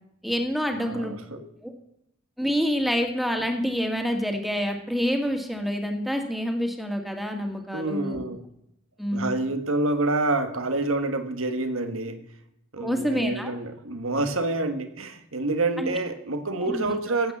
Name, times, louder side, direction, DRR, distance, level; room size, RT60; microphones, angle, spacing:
voice 1, 0.2-1.7 2.4-8.2 9.0-9.3 12.8-13.5 15.8-15.9 16.6-16.9, equal, ahead, 3 dB, 2.1 m, -27 dB
voice 2, 0.7-1.4 7.7-8.4 9.1-12.2 12.7-17.3, right 2 dB, 80° right, 9 dB, 1.5 m, -27 dB
15.0 x 8.7 x 7.3 m, 0.81 s
head